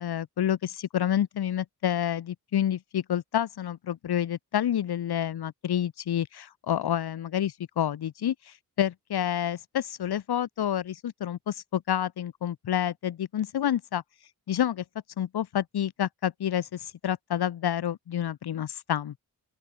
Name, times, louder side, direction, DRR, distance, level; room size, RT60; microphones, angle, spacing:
voice 1, 0.0-14.0 14.5-14.8 15.2-19.2, left 10 dB, 90° left, 2.9 m, -29 dB
open air
cardioid pair, 45°, 37 cm